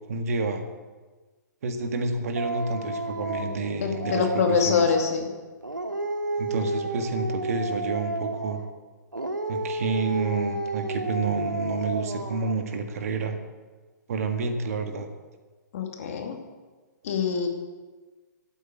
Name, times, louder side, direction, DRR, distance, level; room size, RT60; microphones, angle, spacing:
voice 1, 0.1-0.6 1.6-4.9 6.4-8.6 9.5-13.4 14.1-15.1, right 4 dB, 50° right, 6 dB, 1.8 m, -29 dB
Dog, 2.4-5.2 5.6-8.7 9.1-12.7, right 2 dB, 85° right, 1.4 m, -31 dB
voice 2, 3.8-5.3 15.7-16.4 17.0-17.5, left 6 dB, 50° left, 3 dB, 2.4 m, -24 dB
12.5 x 9.0 x 8.6 m, 1.3 s
figure-of-eight pair, 125°, 10 cm